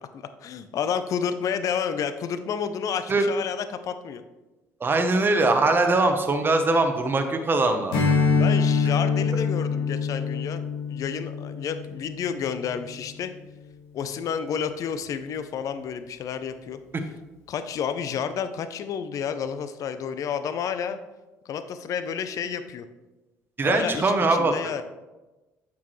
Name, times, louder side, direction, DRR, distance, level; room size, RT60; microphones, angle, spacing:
voice 1, 0.1-4.2 8.4-10.6 10.9-13.3 13.9-16.8 17.5-21.0 21.5-22.9 23.6-24.8, left 7 dB, 60° left, 10 dB, 0.6 m, -30 dB
voice 2, 4.8-7.9 23.6-24.5, right 2 dB, 35° right, 5 dB, 1.0 m, -21 dB
Strum, 7.9-12.7, left 5 dB, 85° left, 1.5 m, -25 dB
8.5 x 6.0 x 3.2 m, 1.1 s
supercardioid pair, 70°, 7 cm